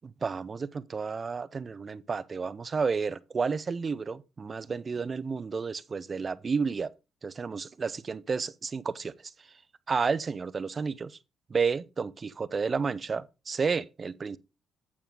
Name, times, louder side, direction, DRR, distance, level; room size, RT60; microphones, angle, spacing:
voice 1, 0.2-6.9 7.2-9.3 9.9-11.2 11.5-14.4, right 5 dB, 35° right, 0.5 m, -31 dB
8.7 x 8.6 x 3.7 m
cardioid pair, 90°, 0 cm